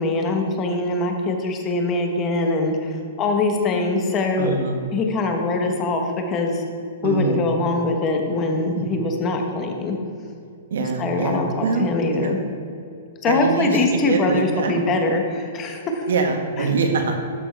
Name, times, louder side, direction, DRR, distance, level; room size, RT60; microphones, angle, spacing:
voice 1, 0.0-4.5 4.9-6.6 7.0-10.0 11.0-12.4 13.2-16.1 16.6-16.7, left 2 dB, 25° left, 3 dB, 1.1 m, -23 dB
voice 2, 4.4-4.8 7.0-7.5 8.7-8.9 10.7-12.5 13.3-14.8 16.1-17.2, right 4 dB, 80° right, 4 dB, 1.2 m, -24 dB
12.5 x 4.4 x 4.5 m, 2.6 s
hypercardioid pair, 150°, 0 cm